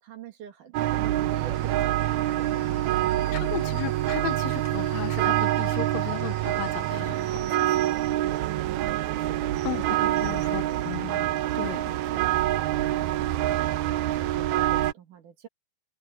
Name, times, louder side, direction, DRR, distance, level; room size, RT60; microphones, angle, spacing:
voice 1, 0.0-3.8 7.9-10.8 11.7-15.5, right 8 dB, 65° right, 3.1 m, -46 dB
sound 1, 0.7-14.9, right 14 dB, 80° right, 1.7 m, -26 dB
sound 2, 1.5-7.0, left 5 dB, 50° left, 3.8 m, -52 dB
voice 2, 3.3-7.8 9.6-11.3 11.5-11.9, left 14 dB, 70° left, 1.8 m, -35 dB
omnidirectional pair, 4.1 m